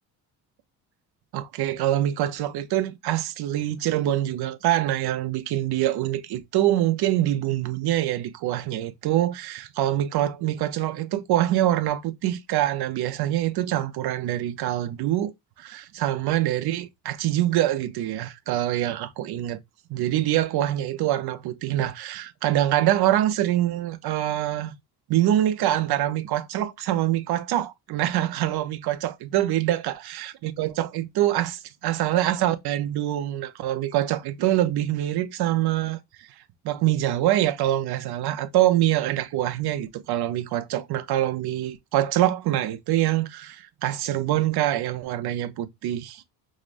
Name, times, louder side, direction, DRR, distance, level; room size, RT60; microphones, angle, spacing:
voice 1, 1.3-15.3 15.6-19.6 19.9-24.7 25.1-36.0 36.6-46.2, right 13 dB, 75° right, 0.7 m, -25 dB
4.9 x 2.0 x 2.4 m
cardioid pair, 160°, 39 cm